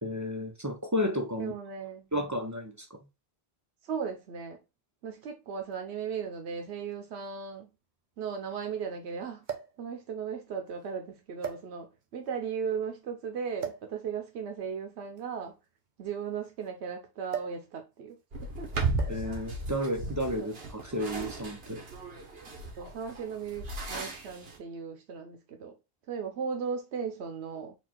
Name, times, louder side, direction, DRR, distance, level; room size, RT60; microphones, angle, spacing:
voice 1, 0.0-1.5 2.1-2.9 19.1-21.8, equal, 20° right, 0.5 m, -32 dB
voice 2, 1.4-2.1 3.8-4.6 5.0-7.7 8.2-9.5 9.8-15.6 16.0-18.2 18.6-18.7 22.8-25.7 26.1-27.8, right 6 dB, 85° right, 0.9 m, -36 dB
sound 1, 5.7-5.8 6.9-7.0 7.3-7.4 9.4-9.8 10.7-10.9 11.4-12.1 13.6-13.9 15.1-16.7 17.3-17.7 17.9-18.2 19.0-19.4 20.3-20.6, right 8 dB, 50° right, 0.8 m, -39 dB
sound 2, 18.3-24.6, right 3 dB, 65° right, 1.3 m, -36 dB
4.4 x 2.4 x 4.3 m
omnidirectional pair, 1.1 m